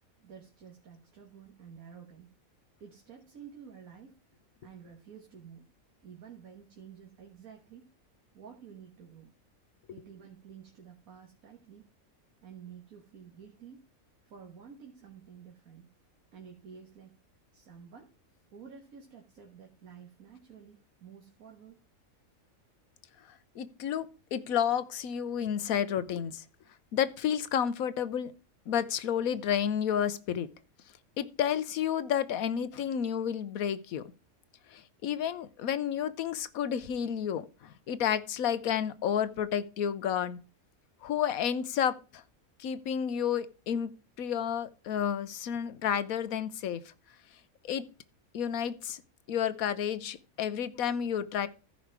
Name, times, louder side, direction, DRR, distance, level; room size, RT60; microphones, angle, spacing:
voice 1, 0.2-2.3 2.8-4.2 4.6-5.7 6.0-7.9 8.3-9.3 9.9-11.9 12.4-13.8 14.2-15.9 16.3-17.1 17.5-18.1 18.5-21.8 23.8-23.9, right 7 dB, 75° right, 1.9 m, -51 dB
voice 2, 23.6-26.4 26.9-28.3 28.7-30.5 31.2-34.0 34.7-40.4 41.0-42.2 42.6-43.9 44.2-46.8 47.6-47.8 48.3-49.0 49.3-51.5, left 9 dB, 80° left, 1.2 m, -31 dB
14.5 x 5.1 x 4.7 m
omnidirectional pair, 1.5 m